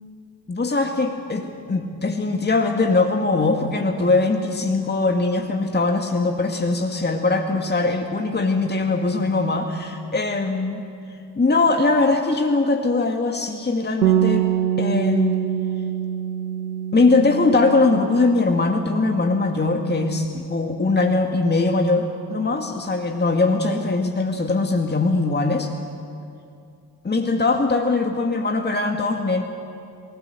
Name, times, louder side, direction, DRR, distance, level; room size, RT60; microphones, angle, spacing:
voice 1, 0.5-10.9 11.4-14.5 14.8-15.4 16.9-25.7 27.0-29.4, left 3 dB, 20° left, 4 dB, 2.0 m, -21 dB
Bass guitar, 14.0-18.7 19.0-20.3, right 10 dB, 90° right, 0.7 m, -25 dB
29.5 x 19.0 x 7.8 m, 2.5 s
figure-of-eight pair, 45°, 49 cm